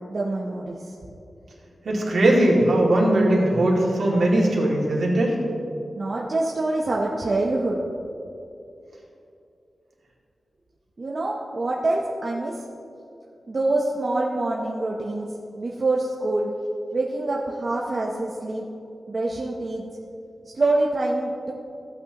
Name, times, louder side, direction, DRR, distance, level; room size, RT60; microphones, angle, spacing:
voice 1, 0.1-0.9 6.0-7.8 11.0-12.6 13.5-15.3 15.6-16.5 16.9-18.7 19.1-19.9 20.5-21.5, right 2 dB, 40° right, -2 dB, 0.8 m, -25 dB
voice 2, 1.8-5.4, right 1 dB, 65° right, -3 dB, 2.2 m, -19 dB
15.5 x 8.5 x 2.9 m, 2.7 s
wide cardioid pair, 150°, 0 cm